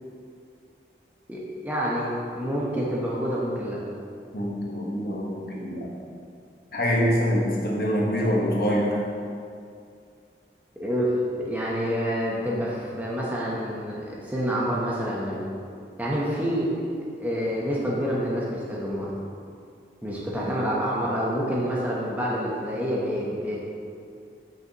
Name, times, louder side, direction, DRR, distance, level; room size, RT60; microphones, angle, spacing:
voice 1, 1.3-3.8 10.8-15.4 16.0-16.8 17.2-19.1 20.0-23.6, equal, 10° right, -5 dB, 0.9 m, -27 dB
voice 2, 4.3-5.9 6.7-9.0, equal, 55° left, -4 dB, 1.3 m, -25 dB
8.7 x 6.2 x 3.0 m, 2.4 s
head